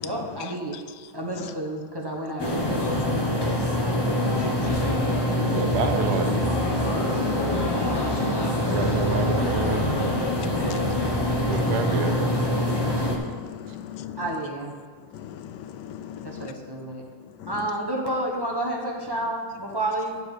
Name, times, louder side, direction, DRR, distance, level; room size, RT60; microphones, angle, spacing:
voice 1, 0.0-0.8 1.1-2.9 14.2-14.7 16.2-17.0 17.5-20.2, right 1 dB, 20° right, -2 dB, 0.9 m, -30 dB
sound 1, 2.4-13.2, left 1 dB, 20° left, 0.6 m, -24 dB
voice 2, 5.5-6.3 8.7-10.1 11.5-12.1, right 7 dB, 75° right, 8 dB, 1.2 m, -28 dB
voice 3, 6.8-7.2 7.8-9.0 10.4-11.5 12.6-13.2 13.4-14.2 15.2-15.3 15.8-16.5, left 9 dB, 90° left, 10 dB, 1.2 m, -36 dB
8.8 x 7.0 x 4.9 m, 1.5 s
omnidirectional pair, 1.8 m